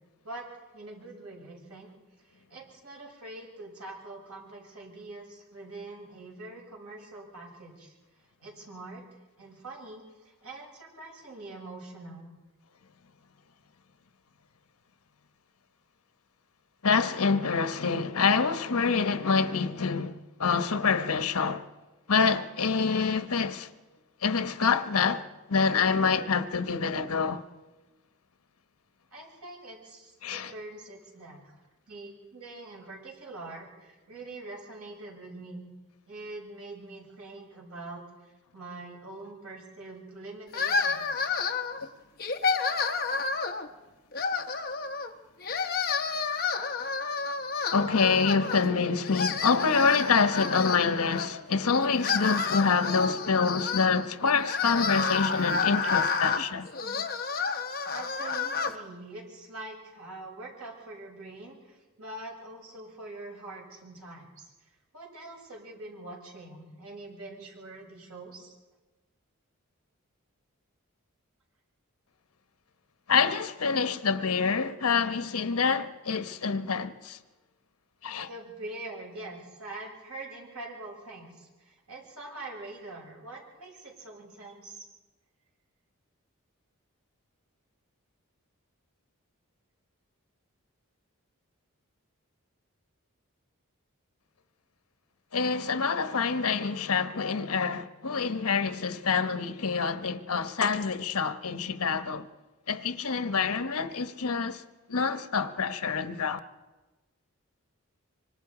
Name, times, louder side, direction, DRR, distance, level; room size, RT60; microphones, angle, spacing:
voice 1, 0.2-1.9 2.3-8.0 8.4-9.1 9.4-12.4 29.1-31.6 31.9-35.7 36.1-41.4 57.9-64.5 64.9-68.6 78.3-84.9, right 2 dB, 90° right, 7.3 m, -44 dB
voice 2, 16.8-21.7 22.1-23.7 24.2-27.4 30.2-30.5 47.7-56.7 73.1-77.2 78.0-78.3 95.3-102.3 102.7-104.6 104.9-106.4, left 5 dB, 85° left, 1.0 m, -26 dB
sound 1, 40.5-41.8 42.2-43.7 44.1-45.1 45.4-48.7 49.0-51.3 51.8-58.7, left 5 dB, 40° left, 1.1 m, -30 dB
25.5 x 25.0 x 5.0 m
head